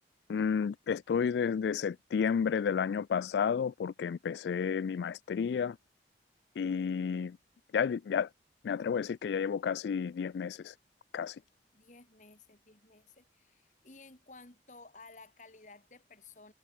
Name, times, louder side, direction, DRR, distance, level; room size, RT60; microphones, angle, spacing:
voice 1, 0.3-5.8 6.6-7.4 7.7-8.3 8.6-10.7 11.1-11.4, left 6 dB, 75° left, 0.3 m, -31 dB
voice 2, 11.7-16.5, left 3 dB, 45° left, 2.6 m, -55 dB
head